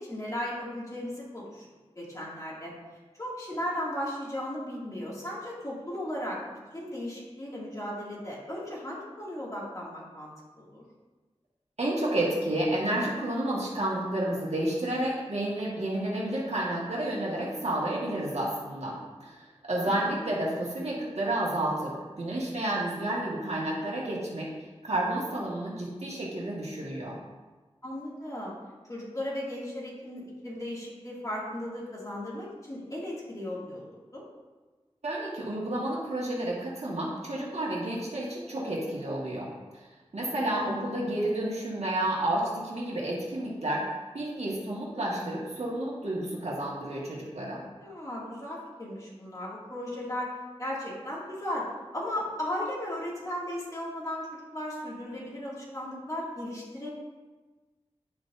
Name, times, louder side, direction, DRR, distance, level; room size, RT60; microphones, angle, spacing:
voice 1, 0.0-1.7 2.0-2.7 3.2-6.4 6.7-10.8 19.7-20.0 27.8-28.5 28.9-34.2 40.6-40.8 47.8-50.3 50.6-51.7 51.9-54.3 54.5-56.9, left 1 dB, 30° left, -5 dB, 2.3 m, -36 dB
voice 2, 11.8-24.5 24.8-27.1 35.0-43.8 44.1-47.6, right 1 dB, 75° right, -4 dB, 1.6 m, -31 dB
10.5 x 6.0 x 2.6 m, 1.3 s
wide cardioid pair, 70°, 11 cm